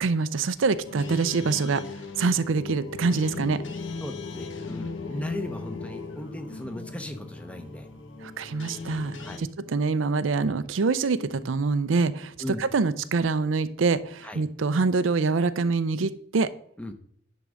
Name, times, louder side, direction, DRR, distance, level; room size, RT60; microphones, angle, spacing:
voice 1, 0.0-1.8 2.2-3.6 8.2-12.3 12.6-16.5, right 4 dB, 85° right, 14 dB, 0.5 m, -25 dB
sound 1, 0.8-9.4, left 4 dB, 75° left, 1.0 m, -38 dB
voice 2, 4.0-7.9 9.2-9.4 12.4-12.6 14.2-14.4 16.8-16.9, left 1 dB, 5° left, 7 dB, 0.8 m, -37 dB
10.0 x 3.8 x 6.3 m, 0.64 s
head